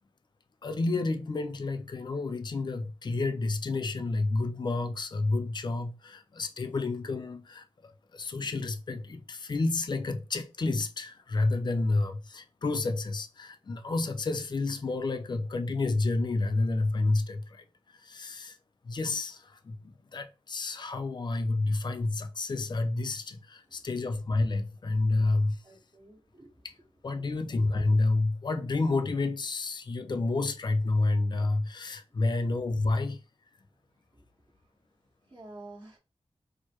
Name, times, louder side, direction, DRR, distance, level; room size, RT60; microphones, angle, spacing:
voice 1, 0.6-17.6 17.9-18.6 18.8-19.8 20.1-25.6 27.0-33.2, left 2 dB, 45° left, 0.5 m, -29 dB
voice 2, 25.6-26.7 32.1-32.2 34.1-34.3 35.3-36.0, right 2 dB, 45° right, 1.5 m, -50 dB
4.4 x 2.1 x 3.0 m
wide cardioid pair, 95°, 11 cm